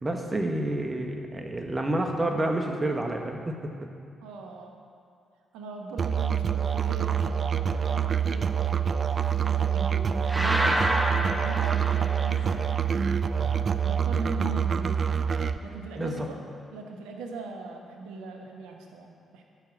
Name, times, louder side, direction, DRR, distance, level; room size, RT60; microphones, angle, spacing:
voice 1, 0.0-3.7 13.4-13.7 16.0-16.3, right 1 dB, 30° right, 3 dB, 1.5 m, -29 dB
voice 2, 4.2-4.7 5.5-12.6 13.3-15.0 15.6-16.4 16.7-19.4, right 3 dB, 75° right, 2 dB, 1.1 m, -40 dB
Musical instrument, 6.0-15.6, right 7 dB, 50° right, 0.5 m, -26 dB
sound 1, 10.3-12.6, right 1 dB, 10° right, 1.2 m, -28 dB
11.5 x 5.9 x 7.8 m, 2.3 s
hypercardioid pair, 40°, 0 cm